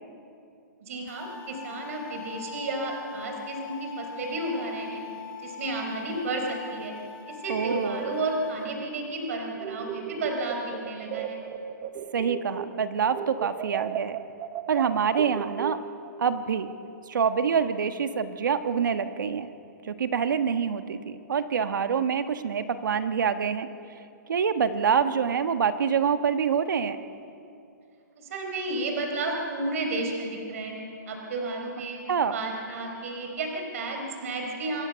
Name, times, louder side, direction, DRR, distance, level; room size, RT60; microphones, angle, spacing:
voice 1, 0.8-5.0 5.4-7.0 7.3-11.4 28.2-32.0 32.3-34.9, right 2 dB, 45° right, 2 dB, 4.4 m, -32 dB
sound 1, 1.1-8.7, left 7 dB, 10° left, 1.4 m, -42 dB
voice 2, 7.5-8.1 12.1-14.2 14.7-15.8 16.2-16.7 17.1-19.5 19.8-23.7 24.3-27.0 32.1-32.3, right 6 dB, 75° right, 9 dB, 1.4 m, -26 dB
sound 2, 9.6-12.8 13.1-16.1, right 10 dB, 20° right, 0.8 m, -35 dB
26.5 x 14.5 x 7.0 m, 2.6 s
hypercardioid pair, 170°, 10 cm